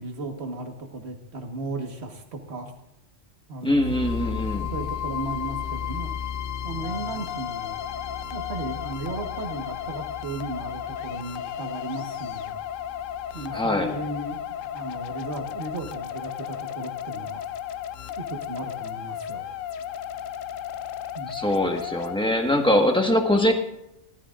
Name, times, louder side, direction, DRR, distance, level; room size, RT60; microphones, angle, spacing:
voice 1, 0.0-2.7 3.5-3.8 4.7-6.1 6.6-7.8 8.3-12.6 13.3-14.4 14.7-17.4 18.2-19.5 21.2-21.6, right 2 dB, 55° right, 4 dB, 1.7 m, -35 dB
voice 2, 3.6-4.7 13.5-13.9 21.3-23.5, left 1 dB, 5° left, 2 dB, 1.3 m, -22 dB
sound 1, 3.7-17.7, left 9 dB, 55° left, 0.8 m, -36 dB
sound 2, 6.8-22.2, left 10 dB, 80° left, 1.0 m, -35 dB
18.5 x 13.0 x 2.5 m, 0.88 s
omnidirectional pair, 1.4 m